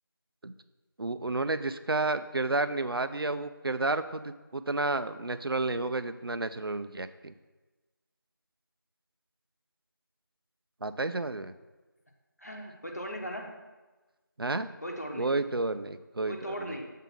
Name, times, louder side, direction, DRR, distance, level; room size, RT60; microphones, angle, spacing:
voice 1, 1.0-7.3 10.8-11.5 14.4-14.7 15.2-16.7, right 2 dB, 90° right, 11 dB, 0.5 m, -31 dB
voice 2, 12.4-13.5 14.8-15.3 16.3-16.9, equal, 45° left, 1 dB, 1.0 m, -38 dB
7.2 x 3.7 x 5.7 m, 1.2 s
figure-of-eight pair, 180°, 12 cm